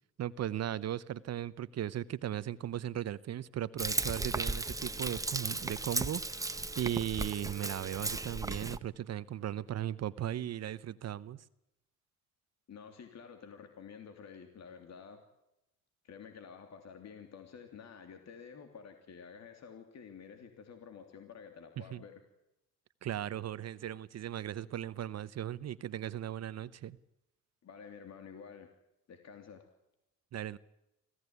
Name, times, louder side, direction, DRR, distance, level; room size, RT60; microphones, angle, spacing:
voice 1, 0.2-11.4 21.8-22.0 23.0-27.0 30.3-30.6, right 11 dB, 55° right, 0.8 m, -37 dB
Frying (food), 3.8-8.8, right 2 dB, 10° right, 1.0 m, -36 dB
voice 2, 12.7-15.2 16.0-22.1 27.6-28.7 29.1-29.6, left 6 dB, 60° left, 3.2 m, -50 dB
25.0 x 16.0 x 9.6 m
cardioid pair, 90°, 30 cm